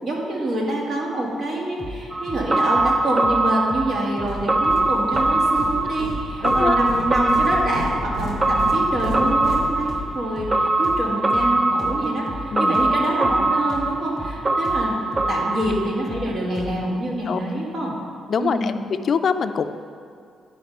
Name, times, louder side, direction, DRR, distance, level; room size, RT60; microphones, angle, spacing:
voice 1, 0.0-15.0 15.3-17.9 18.4-18.8, right 1 dB, 60° right, -3 dB, 2.2 m, -26 dB
sound 1, 1.8-2.0 2.3-2.5 2.7-3.0 3.2-3.4 3.7-3.9 4.2-4.4 4.6-4.9 5.1-5.3 5.6-5.8 6.1-6.3 6.5-6.8 7.0-7.2 7.5-7.7 8.0-8.2 8.4-8.7 8.9-9.6 9.9-10.1 10.4-10.6 10.8-11.0 11.3-11.5 11.8-12.0 12.3-12.5 12.7-13.0 13.2-13.4 13.7-13.9 14.2-14.4 14.6-14.9 15.1-15.3 15.6-15.8 16.1-16.3 16.5-16.8, equal, 5° right, 2.2 m, -35 dB
sound 2, 2.1-16.3 16.6-16.7, right 2 dB, 30° right, 0.6 m, -22 dB
sound 3, 4.3-10.3, equal, 75° right, 1.0 m, -33 dB
voice 2, 6.4-6.8 12.5-12.8 17.3-17.4 18.3-18.7 19.0-19.7, left 6 dB, 50° left, 10 dB, 0.4 m, -23 dB
11.5 x 5.1 x 5.4 m, 2.3 s
cardioid pair, 90°, 0 cm